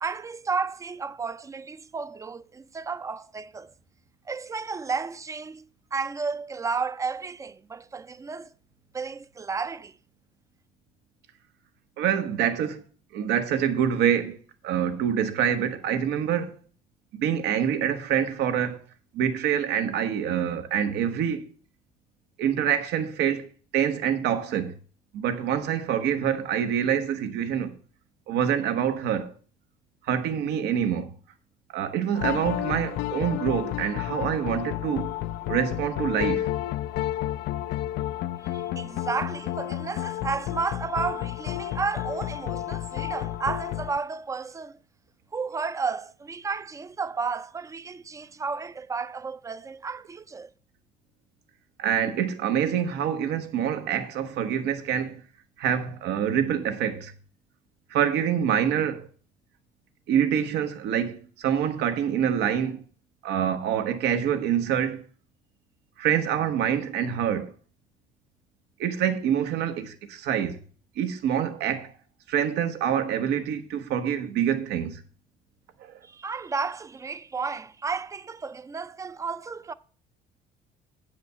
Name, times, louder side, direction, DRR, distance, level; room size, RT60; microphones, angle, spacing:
voice 1, 0.0-3.7 4.3-5.6 5.9-8.5 8.9-9.9 38.5-44.8 45.3-50.5 76.0-79.7, right 5 dB, 20° right, 0.4 m, -32 dB
voice 2, 12.0-12.8 13.1-14.4 14.6-16.6 17.1-18.8 19.1-21.4 22.4-24.7 25.1-27.7 28.3-29.3 30.1-31.1 31.7-35.1 35.5-36.5 51.8-55.2 55.6-57.1 57.9-59.1 60.1-62.8 63.2-65.0 66.0-67.5 68.8-70.6 71.0-71.9 72.3-75.0 75.8-76.0, right 9 dB, 80° right, 1.0 m, -26 dB
Electronic pop & Sweet guitar., 32.1-44.0, left 14 dB, 75° left, 0.4 m, -31 dB
8.3 x 5.0 x 6.7 m
cardioid pair, 110°, 17 cm